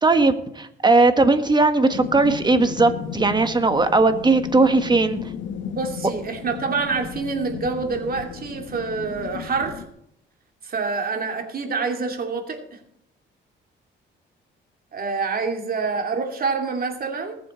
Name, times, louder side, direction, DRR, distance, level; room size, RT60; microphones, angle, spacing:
voice 1, 0.0-5.2, right 3 dB, 20° right, 8 dB, 1.6 m, -18 dB
sound 1, 1.9-9.9, left 8 dB, 70° left, 1.1 m, -34 dB
voice 2, 5.7-9.8 10.6-12.8 14.9-17.4, right 4 dB, 50° right, 3 dB, 2.7 m, -27 dB
20.0 x 7.4 x 4.4 m, 0.75 s
cardioid pair, 90°, 20 cm